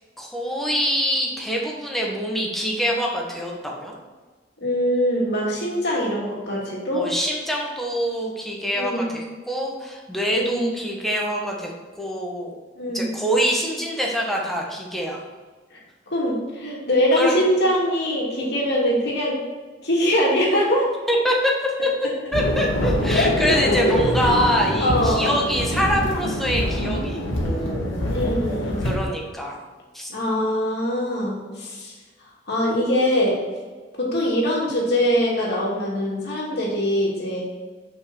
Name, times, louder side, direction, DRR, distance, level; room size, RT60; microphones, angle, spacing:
voice 1, 0.2-3.9 6.9-11.7 12.0-12.6 12.9-15.3 17.2-17.4 21.1-21.9 22.3-27.9 28.8-29.6 29.9-30.1, equal, ahead, -2 dB, 1.6 m, -25 dB
voice 2, 4.6-7.1 8.7-9.3 10.3-10.7 12.8-13.2 15.7-15.8 16.1-19.4 19.8-20.9 23.1-23.3 24.8-25.3 28.1-28.9 30.1-31.9 32.5-33.4 34.0-37.5, equal, 60° left, -4 dB, 2.8 m, -23 dB
sound 1, 22.3-28.9, left 1 dB, 90° left, 2.0 m, -24 dB
6.2 x 6.2 x 6.2 m, 1.4 s
head